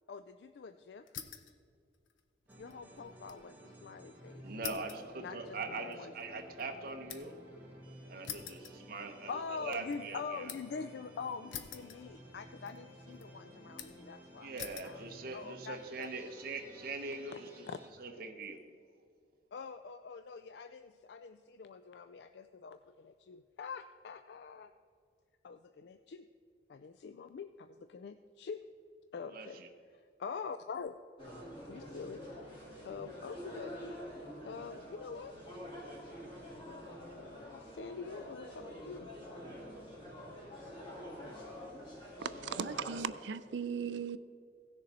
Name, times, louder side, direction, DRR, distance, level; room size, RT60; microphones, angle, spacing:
voice 1, 0.1-1.1 2.6-4.4 5.2-6.1 9.3-14.5 14.8-15.1 15.3-16.3 17.3-17.8 19.5-24.7 25.4-26.3 26.7-28.7 29.1-29.6 29.9-31.0 31.7-34.0 34.4-35.3 36.6-39.1, left 5 dB, 60° left, 10 dB, 0.3 m, -45 dB
sound 1, 1.1-1.6 1.9-3.5 3.8-3.9 4.6-7.5 8.2-9.4 9.8-10.8 11.5-12.4 12.7-13.2 13.8-14.1 14.6-15.0 15.6-16.1, left 8 dB, 85° left, 0.7 m, -47 dB
sound 2, 2.5-17.9, equal, 10° right, 1.8 m, -54 dB
voice 2, 4.4-7.3 8.1-10.5 14.4-17.6 18.0-18.6 29.3-29.7, right 3 dB, 50° right, 4 dB, 0.9 m, -42 dB
sound 3, 31.2-43.0, equal, 25° left, 2.5 m, -47 dB
voice 3, 42.2-44.2, right 6 dB, 75° right, 13 dB, 0.5 m, -37 dB
16.0 x 6.7 x 4.2 m, 2.4 s
head